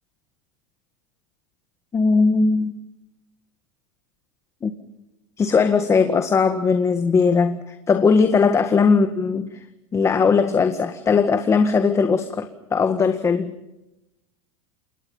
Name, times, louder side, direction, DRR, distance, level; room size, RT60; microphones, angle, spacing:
voice 1, 1.9-2.7 4.6-4.7 5.4-9.5 9.9-13.5, left 5 dB, 20° left, 8 dB, 1.8 m, -19 dB
29.0 x 22.5 x 5.6 m, 0.92 s
supercardioid pair, 130°, 15 cm